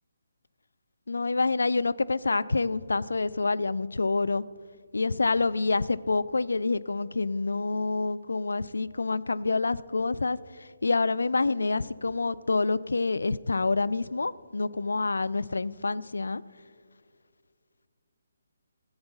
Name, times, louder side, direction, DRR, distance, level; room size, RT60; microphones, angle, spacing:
voice 1, 1.1-4.4 4.9-16.4, left 3 dB, 75° left, 15 dB, 0.3 m, -27 dB
14.5 x 7.9 x 5.3 m, 2.1 s
figure-of-eight pair, 145°, 0 cm